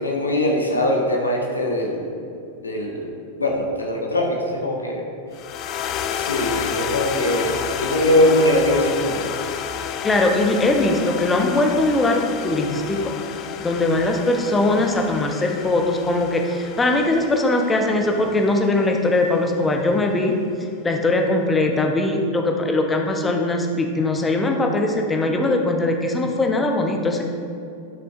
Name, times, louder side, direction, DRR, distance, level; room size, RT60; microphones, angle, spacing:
voice 1, 0.0-2.1 2.6-3.1 3.4-5.0 6.1-9.3, left 1 dB, 80° left, 0 dB, 1.2 m, -21 dB
sound 1, 5.3-19.8, left 8 dB, 35° left, 0.4 m, -31 dB
voice 2, 10.0-13.1 13.6-20.4 20.8-27.2, left 2 dB, 15° left, 2 dB, 0.8 m, -20 dB
11.5 x 6.0 x 2.5 m, 2.6 s
figure-of-eight pair, 90°, 0 cm